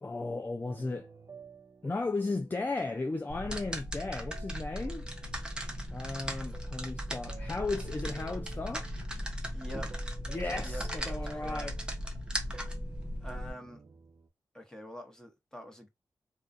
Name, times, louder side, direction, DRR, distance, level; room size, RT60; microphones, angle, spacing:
voice 1, 0.0-1.1 1.8-5.1 5.9-8.9 10.3-11.7, left 3 dB, 25° left, 0.3 m, -35 dB
sound 1, 0.6-5.8 6.3-14.3, right 5 dB, 45° right, 0.5 m, -54 dB
sound 2, 3.3-13.5, equal, 10° right, 0.7 m, -37 dB
voice 2, 9.5-9.9 10.6-11.7 13.2-13.8 14.5-15.9, equal, 10° left, 1.0 m, -45 dB
2.3 x 2.3 x 2.5 m
cardioid pair, 50°, 8 cm